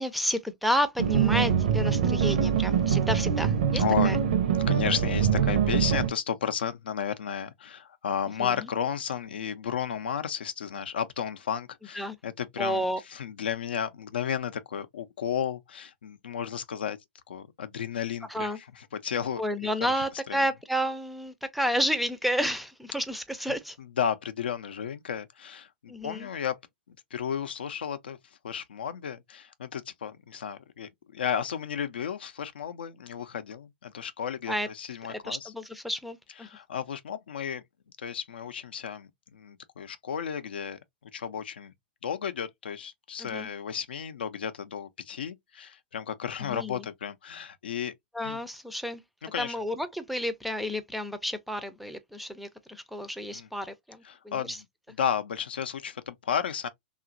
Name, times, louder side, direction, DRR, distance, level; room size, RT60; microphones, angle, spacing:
voice 1, 0.0-4.2 8.4-8.5 11.9-12.2 12.6-13.0 18.3-18.6 19.4-23.8 25.9-26.3 34.5-34.7 35.1-36.5 43.2-43.5 46.4-46.8 48.1-49.0 49.4-54.6, equal, ahead, 0.4 m, -31 dB
sound 1, 1.0-6.1, right 8 dB, 70° right, 0.7 m, -24 dB
voice 2, 3.7-4.2 4.5-12.8 13.1-17.0 17.3-19.4 19.8-20.4 24.0-26.6 26.9-28.2 28.4-35.5 36.4-37.6 38.0-41.7 42.0-47.9 48.2-48.4 49.3-49.5 53.3-53.5 54.0-54.6 55.0-56.7, left 8 dB, 75° left, 0.4 m, -33 dB
2.9 x 2.4 x 2.4 m
hypercardioid pair, 115°, 5 cm